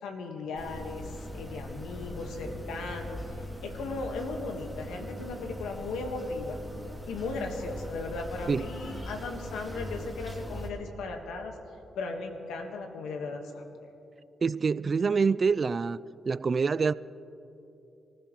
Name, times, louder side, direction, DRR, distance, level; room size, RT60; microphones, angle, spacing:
voice 1, 0.0-6.6 7.1-11.5 11.9-13.6, left 3 dB, 90° left, 4 dB, 1.5 m, -37 dB
sound 1, 0.6-10.7, equal, 15° left, 2.7 m, -40 dB
voice 2, 14.4-16.0 16.3-16.9, right 5 dB, 50° right, 18 dB, 0.3 m, -26 dB
24.5 x 15.0 x 3.1 m, 2.9 s
supercardioid pair, 60°, 0 cm